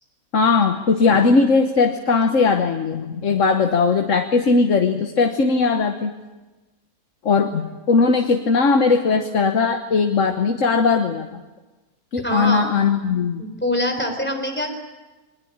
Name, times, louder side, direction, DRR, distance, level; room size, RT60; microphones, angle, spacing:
voice 1, 0.3-6.1 7.2-11.4 12.1-13.4, left 4 dB, 60° left, 5 dB, 1.5 m, -19 dB
voice 2, 12.2-12.7 13.4-14.7, left 1 dB, 5° left, 4 dB, 4.0 m, -24 dB
22.5 x 21.5 x 8.8 m, 1.2 s
omnidirectional pair, 1.5 m